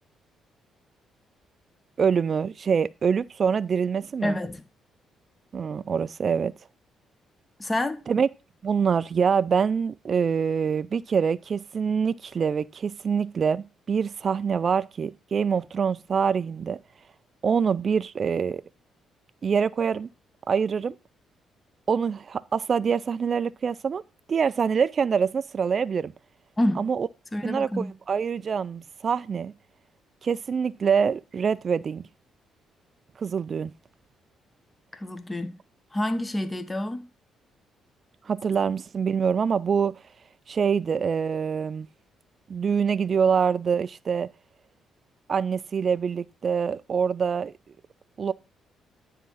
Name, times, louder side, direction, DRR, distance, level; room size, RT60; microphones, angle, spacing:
voice 1, 2.0-4.4 5.5-6.5 8.1-8.3 8.6-16.8 17.4-18.6 19.4-20.1 20.5-21.0 21.9-24.0 24.3-26.1 26.8-27.1 27.4-29.5 30.2-32.0 33.2-33.7 38.3-40.0 40.5-41.9 42.5-44.3 45.3-47.5 48.2-48.3, right 6 dB, 45° right, 0.3 m, -25 dB
voice 2, 4.2-4.6 7.6-8.0 26.6-26.9 27.3-27.9 34.9-35.5 35.9-37.0, left 1 dB, 20° left, 0.9 m, -28 dB
9.7 x 3.7 x 5.5 m
cardioid pair, 90°, 0 cm